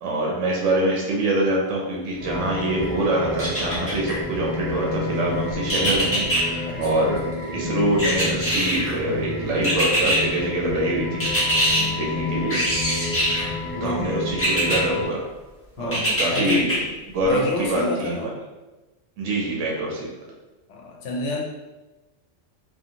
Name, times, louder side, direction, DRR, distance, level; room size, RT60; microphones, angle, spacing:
voice 1, 0.0-7.2 7.5-11.6 12.0-12.6 13.8-15.2 15.8-16.8 17.1-18.3 19.2-20.1, right 1 dB, 75° right, -2 dB, 0.9 m, -25 dB
sound 1, 2.2-15.0, left 2 dB, 30° right, 0.8 m, -30 dB
sound 2, 3.4-4.2 5.7-6.4 8.0-8.9 9.6-10.2 11.2-11.8 12.5-13.5 14.4-14.8 15.9-16.8 17.2-17.3, equal, 15° left, 0.6 m, -22 dB
voice 2, 6.7-7.0 11.7-12.0 13.7-14.5 15.8-16.7 17.2-18.3 20.7-21.4, left 2 dB, 70° left, -1 dB, 0.9 m, -30 dB
2.5 x 2.4 x 2.7 m, 1.1 s
omnidirectional pair, 1.3 m